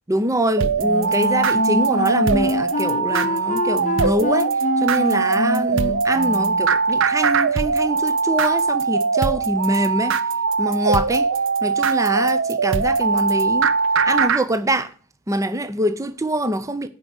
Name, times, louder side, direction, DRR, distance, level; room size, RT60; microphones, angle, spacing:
voice 1, 0.1-10.1 10.6-11.3 11.6-13.7 14.0-14.9 15.3-16.9, right 1 dB, 15° right, 0.5 m, -24 dB
sound 1, 0.6-14.4, right 4 dB, 60° right, 0.7 m, -21 dB
Wind instrument woodwind instrument, 0.8-6.7, left 3 dB, 35° left, 0.5 m, -27 dB
9.4 x 5.2 x 7.0 m
head